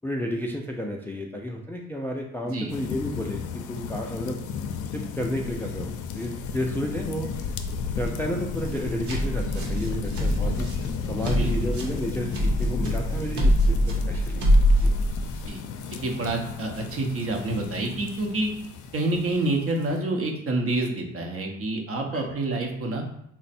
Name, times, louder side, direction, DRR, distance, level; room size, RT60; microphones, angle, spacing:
voice 1, 0.0-3.4 3.7-4.4 4.9-7.3 8.0-14.5 14.8-14.9 22.2-22.4, equal, 5° left, 0 dB, 0.3 m, -32 dB
sound 1, 2.7-20.0, left 6 dB, 80° left, 0.4 m, -34 dB
sound 2, 8.6-15.5, equal, 75° right, 0.9 m, -24 dB
voice 2, 11.3-11.7 15.5-15.6 16.0-18.5 18.9-23.0, right 2 dB, 50° right, 2 dB, 0.8 m, -28 dB
3.2 x 2.1 x 4.1 m, 0.75 s
cardioid pair, 90°, 30 cm